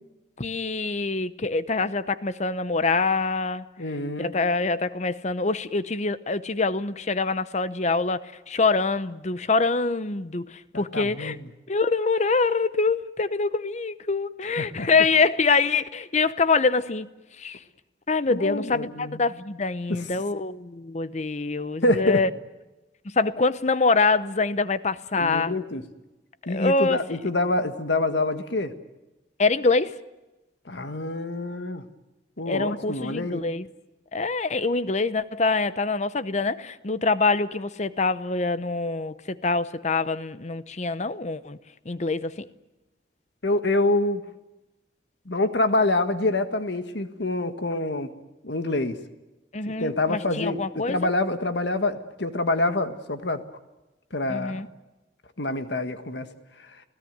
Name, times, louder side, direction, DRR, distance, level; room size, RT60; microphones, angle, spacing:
voice 1, 0.4-3.6 4.2-8.2 8.5-11.4 11.7-17.1 17.4-17.6 18.1-22.3 23.0-25.6 26.5-27.0 29.4-29.9 32.5-33.7 34.1-41.6 41.9-42.5 49.5-51.1 54.3-54.7, left 3 dB, 40° left, 0.8 m, -25 dB
voice 2, 3.8-4.3 10.7-11.5 14.5-14.9 18.3-19.2 19.9-20.0 21.8-22.2 25.1-25.8 26.5-28.7 30.6-31.8 32.4-33.4 43.4-44.2 45.2-48.1 48.4-49.0 49.7-53.4 54.1-54.6 55.4-56.3, left 2 dB, 70° left, 1.6 m, -26 dB
29.5 x 17.0 x 9.4 m
head